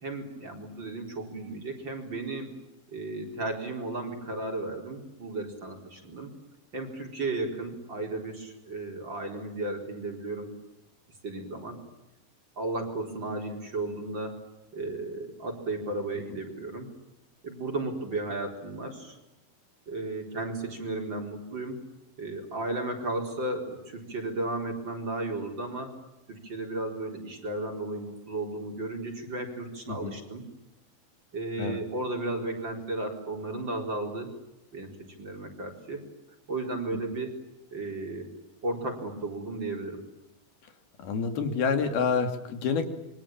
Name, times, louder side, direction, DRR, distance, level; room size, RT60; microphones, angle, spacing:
voice 1, 0.0-2.5 2.9-6.3 6.7-10.5 11.2-11.8 12.6-14.4 14.7-16.9 17.4-19.2 19.9-21.8 22.2-26.0 26.3-30.4 31.3-34.3 34.7-36.1 36.5-37.4 37.7-38.3 38.6-40.0, right 2 dB, 30° right, 3 dB, 4.7 m, -34 dB
voice 2, 41.0-42.9, left 5 dB, 90° left, 7 dB, 4.6 m, -28 dB
27.5 x 24.0 x 8.9 m, 0.93 s
omnidirectional pair, 4.2 m